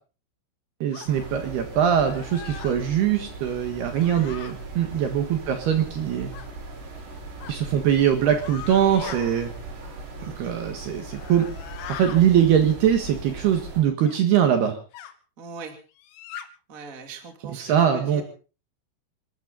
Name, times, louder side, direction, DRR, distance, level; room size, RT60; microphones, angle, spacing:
voice 1, 0.8-6.3 7.5-9.5 10.2-11.5 11.9-14.8 17.6-18.2, right 9 dB, 65° right, 6 dB, 3.0 m, -22 dB
sound 1, 0.9-1.1 2.0-2.8 3.9-4.5 6.3-6.5 7.4-7.6 8.3-9.2 11.0-12.2 14.1-14.2 14.9-15.1 16.0-16.5, left 10 dB, 70° left, 3.1 m, -40 dB
sound 2, 1.1-13.8, right 3 dB, 80° right, 8.5 m, -39 dB
voice 2, 10.2-10.6 15.4-15.8 16.7-18.2, right 4 dB, 25° right, 4 dB, 2.0 m, -41 dB
28.0 x 13.0 x 3.9 m, 0.36 s
omnidirectional pair, 5.9 m